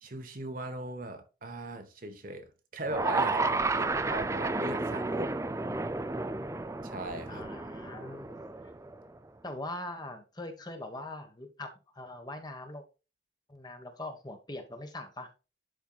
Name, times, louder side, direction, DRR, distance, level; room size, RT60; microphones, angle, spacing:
voice 1, 0.0-5.3 6.8-7.4, right 2 dB, 45° right, 1.2 m, -39 dB
sound 1, 2.9-9.1, right 3 dB, 15° right, 0.4 m, -32 dB
voice 2, 7.3-8.4 9.4-12.8 13.5-15.3, left 2 dB, 20° left, 1.3 m, -42 dB
11.5 x 4.6 x 2.3 m
head